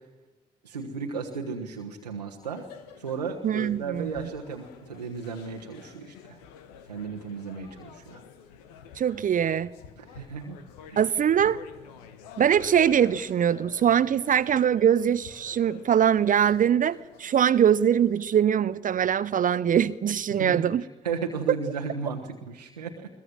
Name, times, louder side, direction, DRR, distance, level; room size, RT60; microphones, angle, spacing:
voice 1, 0.6-2.7 3.0-6.4 6.9-8.2 10.0-10.6 10.9-11.0 20.4-20.7 21.0-23.1, right 5 dB, 85° right, 0 dB, 1.2 m, -35 dB
sound 1, 2.4-18.3, left 7 dB, 70° left, 1.5 m, -49 dB
voice 2, 3.4-4.3 9.0-9.7 11.0-11.6 12.4-20.8, right 9 dB, 40° right, 18 dB, 0.7 m, -22 dB
21.5 x 21.5 x 7.4 m, 1.2 s
figure-of-eight pair, 40°, 21 cm